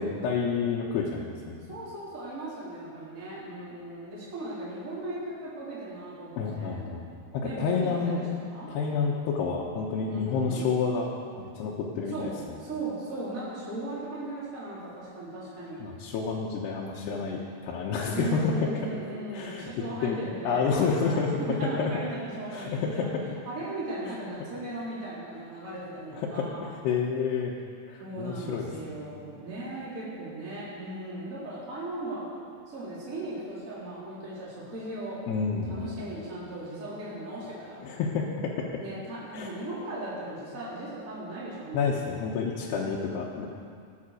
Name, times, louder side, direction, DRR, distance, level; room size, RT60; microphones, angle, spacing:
voice 1, 0.0-1.8 6.4-7.1 7.3-8.2 8.7-11.1 11.4-12.3 15.8-18.8 19.3-19.7 20.0-20.2 20.4-21.9 22.5-23.2 26.1-27.5 27.8-28.7 28.9-29.2 35.3-36.0 37.8-38.8 39.3-39.5 41.7-43.5, left 5 dB, 85° left, -4 dB, 3.2 m, -29 dB
voice 2, 1.7-6.9 7.4-8.7 10.1-10.7 12.1-12.3 12.6-15.9 18.1-23.1 23.5-26.7 28.0-32.3 32.7-35.2 35.7-37.8 38.8-42.1, right 2 dB, 20° right, -8 dB, 3.8 m, -37 dB
21.5 x 8.0 x 6.5 m, 2.2 s
omnidirectional pair, 4.7 m